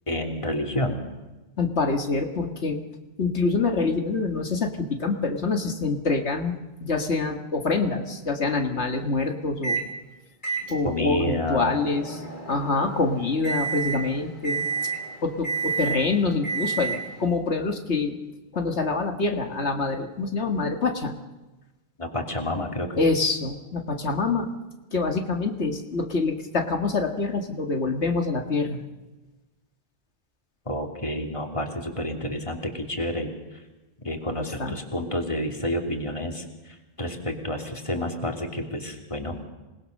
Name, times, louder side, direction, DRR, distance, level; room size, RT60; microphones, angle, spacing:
voice 1, 0.1-1.0 10.8-11.8 22.0-23.0 30.7-33.3 34.0-39.4, left 1 dB, 30° left, 3 dB, 3.0 m, -29 dB
voice 2, 1.6-2.8 3.2-6.5 6.8-9.8 10.7-14.7 15.2-18.2 18.5-21.1 23.0-24.5 24.9-28.8 34.6-34.8, left 3 dB, 90° left, 4 dB, 2.2 m, -26 dB
Microwave oven, 9.6-9.9 10.4-17.3, right 5 dB, 45° left, 3.6 m, -31 dB
27.0 x 20.5 x 6.6 m, 1.1 s
omnidirectional pair, 1.1 m